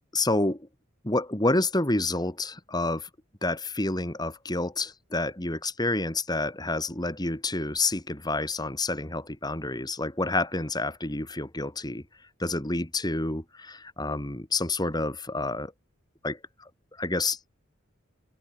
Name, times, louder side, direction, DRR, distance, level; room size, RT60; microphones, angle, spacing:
voice 1, 0.1-0.7 1.0-3.1 3.4-12.0 12.4-15.7 16.2-16.7 17.0-17.4, left 2 dB, 20° left, 2.4 m, -29 dB
open air
head